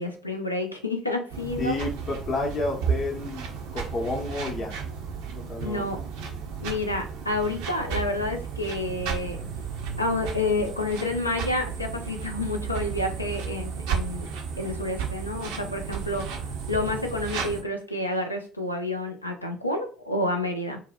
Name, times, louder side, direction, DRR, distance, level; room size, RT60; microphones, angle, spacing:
voice 1, 0.0-1.8 5.6-6.0 6.6-9.4 10.0-14.3 14.6-20.8, left 2 dB, 90° left, 3 dB, 0.3 m, -29 dB
sound 1, 1.3-17.6, right 6 dB, 65° right, 0.4 m, -33 dB
voice 2, 1.6-3.5 3.7-4.7 5.3-5.9, left 2 dB, 45° left, 2 dB, 0.7 m, -30 dB
2.7 x 2.0 x 2.4 m, 0.38 s
figure-of-eight pair, 55°, 0 cm